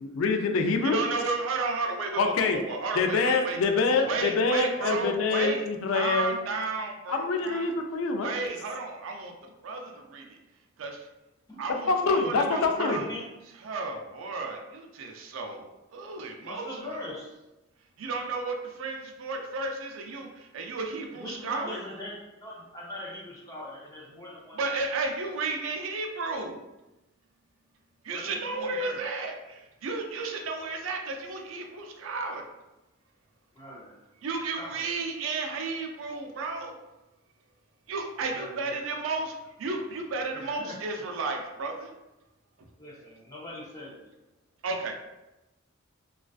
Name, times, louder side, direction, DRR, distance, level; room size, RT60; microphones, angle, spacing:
voice 1, 0.0-1.0 2.2-2.6 3.0-6.4 7.1-8.3 11.7-13.0, left 4 dB, 80° left, 5 dB, 0.3 m, -25 dB
voice 2, 0.8-3.6 4.1-5.6 5.9-7.6 8.2-9.3 9.6-10.4 10.8-11.0 11.6-13.0 13.6-15.6 15.9-16.7 18.0-21.8 24.6-26.5 28.0-32.4 34.2-36.7 37.9-39.3 39.6-41.9 44.6-44.9, right 3 dB, 75° right, 2 dB, 0.4 m, -33 dB
voice 3, 12.3-13.3 16.4-17.4 21.2-25.1 28.1-29.0 33.5-34.0 34.6-35.0 38.3-38.9 40.3-41.1 42.8-44.1, left 1 dB, 15° left, -4 dB, 0.5 m, -42 dB
2.3 x 2.3 x 2.3 m, 0.99 s
head